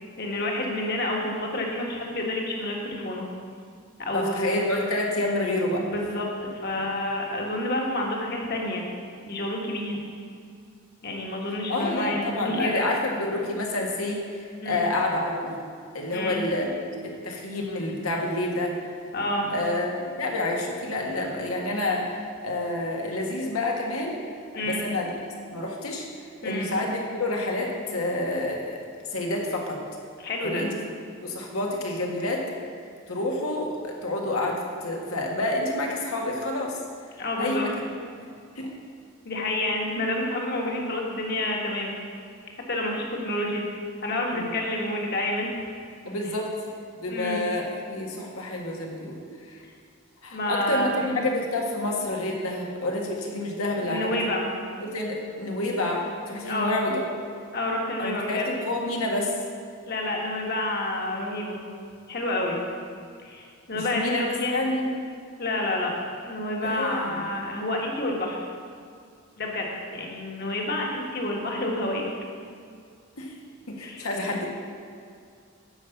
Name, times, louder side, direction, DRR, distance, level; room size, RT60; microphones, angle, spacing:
voice 1, 0.2-3.3 4.0-4.6 5.8-8.9 9.2-10.0 11.0-12.8 14.6-14.9 16.1-16.5 19.1-19.5 24.5-24.8 26.4-26.7 30.2-30.6 37.2-37.7 39.2-41.9 42.7-43.7 44.0-45.6 47.1-47.4 50.3-51.2 53.8-54.6 56.4-56.7 57.5-58.5 59.9-61.7 62.1-62.6 63.2-64.6 65.4-65.9 66.2-68.4 69.4-72.0 73.8-74.1, left 1 dB, 45° left, 0 dB, 1.5 m, -29 dB
voice 2, 4.1-5.9 11.7-15.6 15.9-16.7 17.0-18.7 19.5-19.9 20.2-22.1 22.4-24.2 24.6-25.1 25.5-26.1 26.4-28.8 29.1-29.8 30.4-30.8 31.2-32.5 33.1-36.8 37.4-37.7 38.6-38.7 44.3-44.5 46.0-46.5 47.0-49.2 49.5-49.6 50.2-54.2 54.8-57.1 58.0-59.3 63.7-64.9 66.6-67.3 73.2-73.3 73.7-74.5, left 2 dB, 85° left, 0 dB, 1.7 m, -28 dB
9.7 x 5.5 x 7.0 m, 2.3 s
head